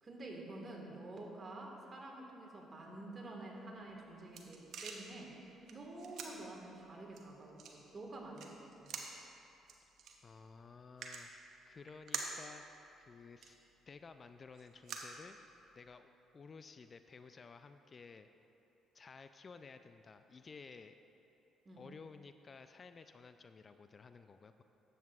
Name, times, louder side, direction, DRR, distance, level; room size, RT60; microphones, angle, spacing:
voice 1, 0.0-9.0 21.6-21.8, right 2 dB, 40° right, 0 dB, 1.6 m, -49 dB
sound 1, 3.8-15.9, right 5 dB, 65° right, 0.9 m, -50 dB
voice 2, 10.2-12.6 13.0-13.6 13.9-15.4 15.8-18.3 18.9-21.0 21.8-24.6, left 5 dB, 40° left, 10 dB, 0.3 m, -55 dB
12.0 x 7.9 x 2.4 m, 2.9 s
supercardioid pair, 60°, 0 cm